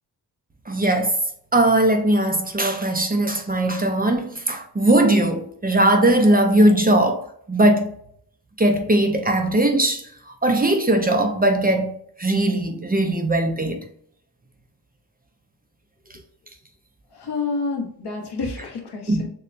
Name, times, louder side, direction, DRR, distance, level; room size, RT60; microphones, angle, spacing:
voice 1, 0.7-1.2 1.5-7.9 8.6-10.0 10.4-13.8 19.1-19.2, right 1 dB, 20° right, 0.5 m, -19 dB
voice 2, 17.1-19.3, left 4 dB, 75° left, 1.1 m, -29 dB
6.6 x 2.2 x 2.6 m
wide cardioid pair, 125°, 40 cm